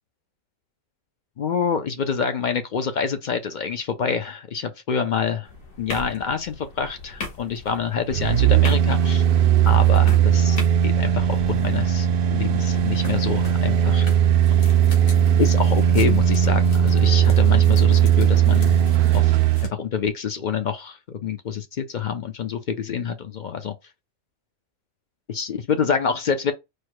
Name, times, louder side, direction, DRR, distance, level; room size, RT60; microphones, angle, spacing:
voice 1, 1.4-5.5 5.8-9.2 9.6-14.1 14.5-14.7 15.4-18.8 19.1-19.3 19.7-23.7 25.3-26.5, left 6 dB, 65° left, 0.4 m, -27 dB
sound 1, 5.4-19.7, left 3 dB, 85° left, 1.7 m, -40 dB
sound 2, 8.1-19.7 20.1-20.2, right 10 dB, 65° right, 0.5 m, -18 dB
4.7 x 2.1 x 4.6 m
omnidirectional pair, 1.4 m